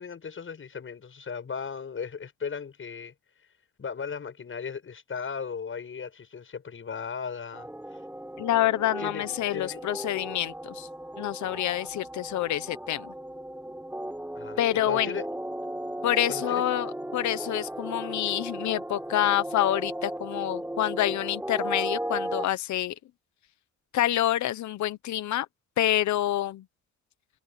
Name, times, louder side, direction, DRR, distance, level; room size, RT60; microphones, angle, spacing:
voice 1, 0.0-3.1 3.8-7.7 9.0-9.8 14.3-15.3 16.3-16.6, left 6 dB, 45° left, 7.9 m, -37 dB
sound 1, 7.5-22.5, right 1 dB, 5° right, 4.9 m, -36 dB
voice 2, 8.4-10.9 11.2-13.1 14.6-15.2 16.0-22.9 23.9-25.5 25.8-26.6, left 13 dB, 70° left, 1.0 m, -27 dB
cardioid pair, 90°, 30 cm